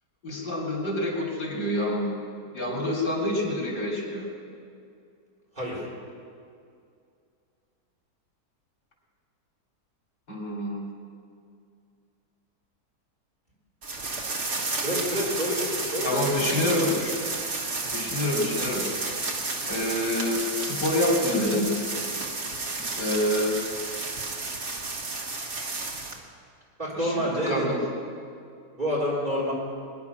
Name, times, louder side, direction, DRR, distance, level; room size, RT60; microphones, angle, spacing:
voice 1, 0.2-2.1 2.5-4.3 10.3-10.8 16.0-17.0 17.5-18.8 19.7-21.7 23.0-23.5 27.0-27.8, left 1 dB, 90° left, -2 dB, 3.9 m, -27 dB
voice 2, 5.5-5.9 14.8-17.1 26.8-27.7 28.7-29.5, equal, 25° right, -5 dB, 4.4 m, -29 dB
sound 1, 13.8-26.2, right 3 dB, 45° right, 1.8 m, -31 dB
22.0 x 10.5 x 5.9 m, 2.4 s
omnidirectional pair, 1.7 m